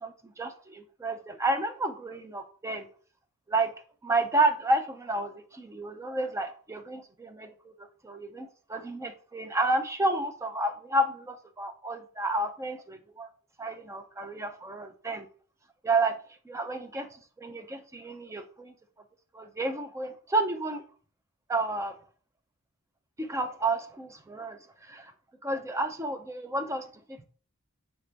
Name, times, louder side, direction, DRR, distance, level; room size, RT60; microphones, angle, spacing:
voice 1, 0.0-2.9 3.5-3.7 4.0-7.7 8.0-13.3 13.6-15.3 15.8-16.2 16.5-17.1 17.4-18.7 19.3-20.8 21.5-22.0 23.2-25.1 25.4-27.3, right 2 dB, 15° right, 0.4 m, -31 dB
3.4 x 3.3 x 3.9 m
head